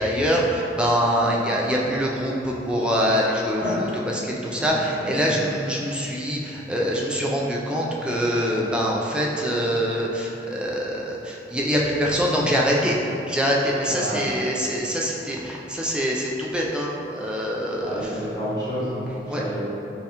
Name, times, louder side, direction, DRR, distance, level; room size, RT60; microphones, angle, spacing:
voice 1, 0.0-13.0 13.3-18.2 19.3-19.4, equal, 5° right, -4 dB, 0.3 m, -24 dB
voice 2, 4.5-5.4 13.9-14.4 17.8-19.5, equal, 20° left, -12 dB, 1.1 m, -30 dB
5.4 x 2.3 x 2.9 m, 3.0 s
head